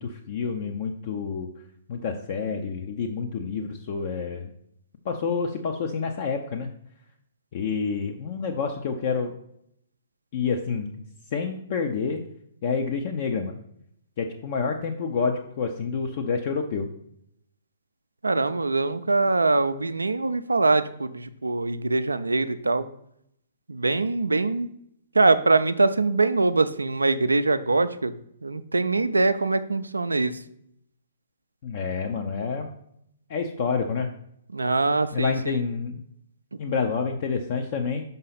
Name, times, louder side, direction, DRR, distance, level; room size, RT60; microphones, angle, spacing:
voice 1, 0.0-1.5 1.9-4.5 5.0-6.7 7.5-9.3 10.3-11.0 11.3-12.2 12.6-13.6 14.2-16.9 31.6-32.7 33.3-34.1 35.1-36.0 36.6-38.0, left 5 dB, 45° left, 4 dB, 0.6 m, -28 dB
voice 2, 18.2-22.9 23.7-24.7 25.1-28.1 28.4-30.4 34.5-35.6, right 3 dB, 80° right, 12 dB, 0.4 m, -23 dB
5.6 x 5.3 x 4.0 m, 0.72 s
figure-of-eight pair, 120°, 0 cm